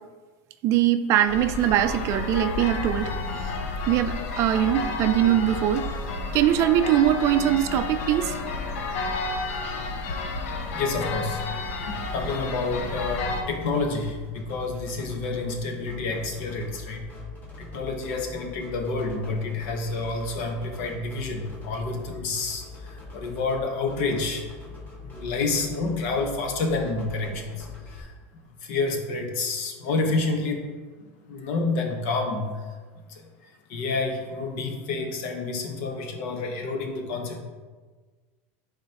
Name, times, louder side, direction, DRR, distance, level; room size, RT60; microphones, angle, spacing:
voice 1, 0.6-3.5 3.9-5.9 6.3-8.4, right 11 dB, 45° right, 10 dB, 0.4 m, -22 dB
sound 1, 1.3-13.4, left 3 dB, 85° left, 0.8 m, -31 dB
voice 2, 10.7-11.4 11.8-17.0 17.6-28.1 28.6-30.7 31.0-32.5 33.1-33.2 33.7-37.4, left 3 dB, 65° left, 2 dB, 1.2 m, -29 dB
sound 2, 11.9-28.0, left 2 dB, 25° left, 1.5 m, -43 dB
10.0 x 4.1 x 3.0 m, 1.4 s
supercardioid pair, 145°, 7 cm